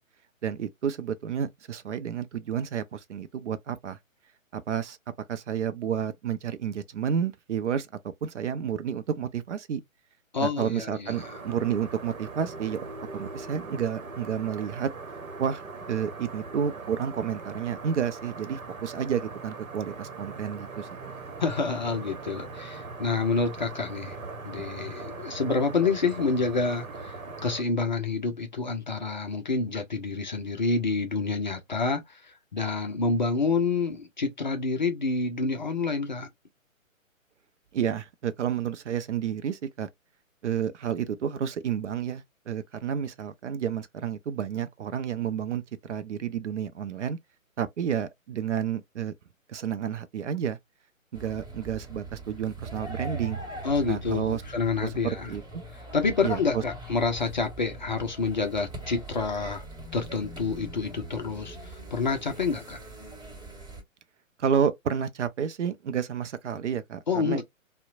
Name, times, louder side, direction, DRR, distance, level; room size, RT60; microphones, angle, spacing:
voice 1, 0.4-4.0 4.5-5.0 5.3-7.9 8.2-9.8 10.4-12.9 13.1-14.9 15.4-15.6 15.9-21.1 37.7-39.9 40.4-47.2 47.6-49.1 49.5-50.6 51.1-53.4 53.9-54.4 54.8-55.6 56.2-56.6 64.4-67.4, right 8 dB, 60° right, 0.5 m, -30 dB
voice 2, 10.3-11.3 21.4-24.2 24.4-36.3 53.6-55.3 55.9-59.6 59.9-62.8 67.1-67.4, left 4 dB, 35° left, 0.4 m, -28 dB
outside ambience, 11.1-27.6, right 3 dB, 80° right, 1.0 m, -40 dB
Football match, 51.1-63.8, right 2 dB, 15° right, 1.6 m, -41 dB
2.7 x 2.1 x 2.4 m
figure-of-eight pair, 140°, 41 cm